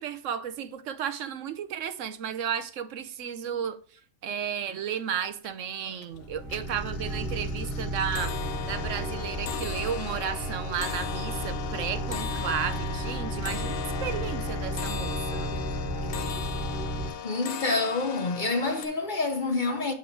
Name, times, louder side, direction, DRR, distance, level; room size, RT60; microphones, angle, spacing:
voice 1, 0.0-8.3 8.7-15.5, right 8 dB, 70° right, 1.0 m, -33 dB
sound 1, 4.5-4.6 4.9-5.5 5.9-6.2 6.5-18.9, left 9 dB, 90° left, 1.2 m, -37 dB
sound 2, 6.1-17.1, right 1 dB, 45° right, 1.7 m, -33 dB
voice 2, 17.2-19.9, left 3 dB, 45° left, 0.8 m, -27 dB
7.4 x 4.5 x 4.6 m
omnidirectional pair, 1.4 m